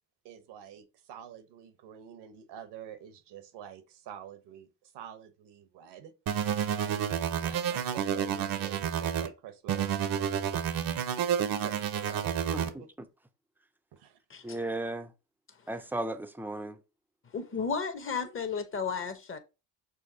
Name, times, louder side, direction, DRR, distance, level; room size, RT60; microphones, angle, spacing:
voice 1, 0.2-6.1 6.7-7.0 7.4-10.7 11.5-12.9 13.9-14.2, right 9 dB, 75° right, 1.0 m, -47 dB
sound 1, 6.3-9.3 9.7-12.7, right 8 dB, 55° right, 0.7 m, -30 dB
voice 2, 12.5-12.8 14.4-15.1 15.7-16.8, right 2 dB, 5° right, 0.5 m, -35 dB
voice 3, 17.3-19.4, left 6 dB, 30° left, 0.9 m, -33 dB
6.3 x 2.3 x 2.7 m
cardioid pair, 90°, 42 cm